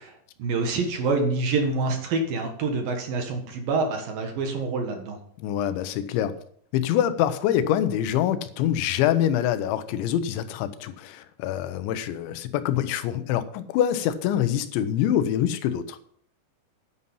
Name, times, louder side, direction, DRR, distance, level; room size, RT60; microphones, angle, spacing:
voice 1, 0.0-5.2, right 3 dB, 60° right, 3 dB, 2.9 m, -27 dB
voice 2, 5.4-6.3 6.7-16.0, left 10 dB, 90° left, 12 dB, 3.2 m, -25 dB
10.0 x 9.5 x 5.6 m, 0.62 s
omnidirectional pair, 5.1 m